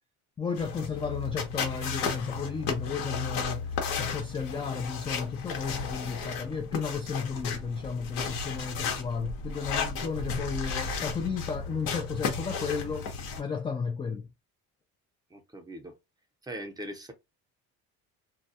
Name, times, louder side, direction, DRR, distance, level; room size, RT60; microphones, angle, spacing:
voice 1, 0.4-3.7 4.0-13.1 13.4-14.3, left 5 dB, 15° left, 0.3 m, -33 dB
sound 1, 0.6-13.4, left 5 dB, 80° left, 0.9 m, -34 dB
voice 2, 15.3-16.0 16.4-17.1, right 1 dB, 10° right, 0.8 m, -40 dB
2.2 x 2.2 x 2.7 m
supercardioid pair, 95°, 36 cm